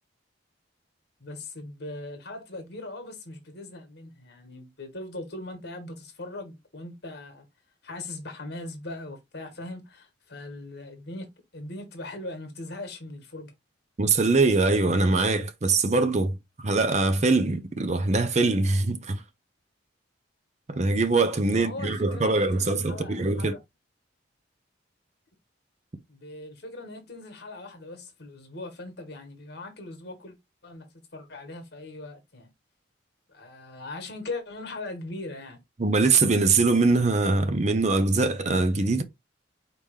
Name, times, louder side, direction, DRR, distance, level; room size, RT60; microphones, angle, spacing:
voice 1, 1.2-7.5 7.8-13.5 21.5-23.6 26.1-30.3 30.6-30.9 31.1-32.5 33.3-35.6, left 2 dB, 55° left, 1.5 m, -40 dB
voice 2, 14.0-19.2 20.7-23.5 35.8-39.0, right 3 dB, 35° right, 0.6 m, -23 dB
4.9 x 2.9 x 3.6 m
head